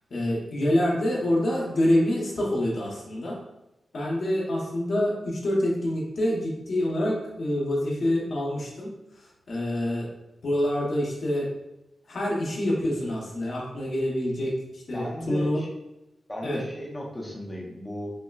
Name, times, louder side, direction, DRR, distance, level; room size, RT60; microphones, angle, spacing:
voice 1, 0.1-3.4 3.9-8.9 9.5-10.1 10.4-11.5 12.1-15.6 16.4-16.6, left 1 dB, 55° left, -2 dB, 0.8 m, -26 dB
voice 2, 14.9-15.7 16.3-18.1, left 1 dB, 10° left, -3 dB, 0.6 m, -35 dB
5.3 x 2.1 x 2.3 m, 0.94 s
wide cardioid pair, 150°, 0 cm